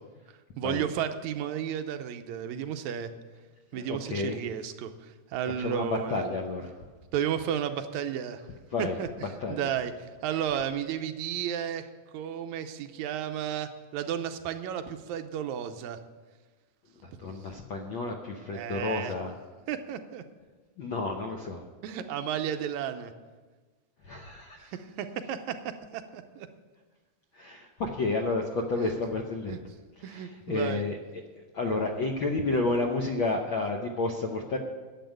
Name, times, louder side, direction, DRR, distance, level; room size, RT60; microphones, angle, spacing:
voice 1, 0.6-3.1 3.7-6.2 7.1-8.4 8.8-11.9 12.1-16.0 18.5-19.1 19.7-20.2 21.8-23.1 24.7-26.5 28.7-28.9 29.5-29.6 30.0-30.8, right 9 dB, 85° right, 8 dB, 2.1 m, -33 dB
voice 2, 3.7-4.4 5.6-6.7 8.7-9.0 9.4-9.6 17.2-19.3 20.8-21.6 24.1-24.7 27.4-29.6 30.0-31.0 31.5-34.6, left 3 dB, 70° left, 2 dB, 1.2 m, -30 dB
10.5 x 7.6 x 9.1 m, 1.3 s
omnidirectional pair, 3.3 m